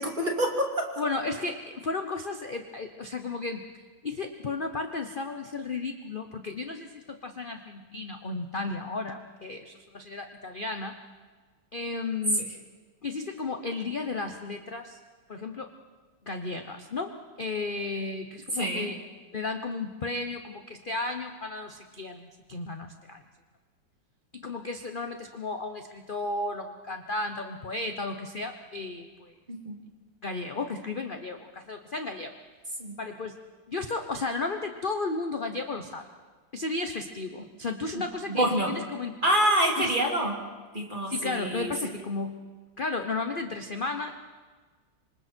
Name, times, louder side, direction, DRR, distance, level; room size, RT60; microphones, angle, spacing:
voice 1, 0.0-0.9 18.5-18.9 29.5-29.8 32.8-33.0 37.9-38.7 39.2-40.4 40.7-41.7, right 1 dB, 25° right, 1 dB, 3.1 m, -27 dB
voice 2, 1.0-3.7 4.0-11.0 11.7-12.5 13.0-15.0 15.3-15.7 16.3-19.0 19.3-23.2 24.3-29.3 30.2-32.4 33.0-33.3 33.7-36.0 36.5-39.1 39.8-39.9 41.1-42.4 42.8-44.1, left 3 dB, 35° left, 6 dB, 1.0 m, -34 dB
26.5 x 25.5 x 4.5 m, 1.4 s
omnidirectional pair, 2.0 m